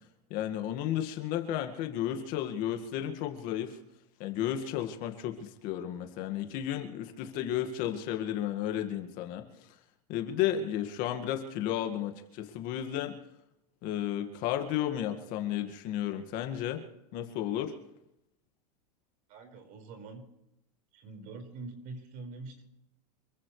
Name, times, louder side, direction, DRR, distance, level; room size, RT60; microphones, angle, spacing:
voice 1, 0.3-3.8 4.2-9.4 10.1-13.2 13.8-16.8 17.1-17.7, left 11 dB, 45° left, 6 dB, 2.0 m, -33 dB
voice 2, 19.3-20.3 20.9-22.6, right 3 dB, 45° right, 5 dB, 5.3 m, -44 dB
27.0 x 15.5 x 3.3 m, 0.83 s
supercardioid pair, 140°, 20 cm